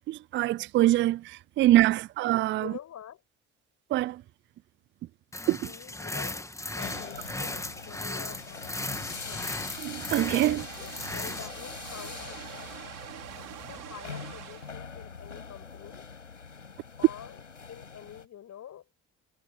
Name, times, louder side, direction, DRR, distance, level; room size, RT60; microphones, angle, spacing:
voice 1, 0.1-2.7 3.9-4.2 5.5-5.6 9.8-10.6, right 15 dB, 35° right, 0.4 m, -24 dB
voice 2, 2.5-3.2 5.6-6.5 6.7-8.8 9.2-9.5 10.3-12.7 13.6-16.0 17.0-17.4 17.7-18.9, left 10 dB, 50° left, 7.5 m, -46 dB
sound 1, 5.3-11.5, left 2 dB, 10° left, 2.0 m, -37 dB
sound 2, 6.8-18.2, left 5 dB, 90° left, 7.2 m, -43 dB
sound 3, 10.6-14.7, right 17 dB, 60° right, 5.3 m, -45 dB
figure-of-eight pair, 55°, 36 cm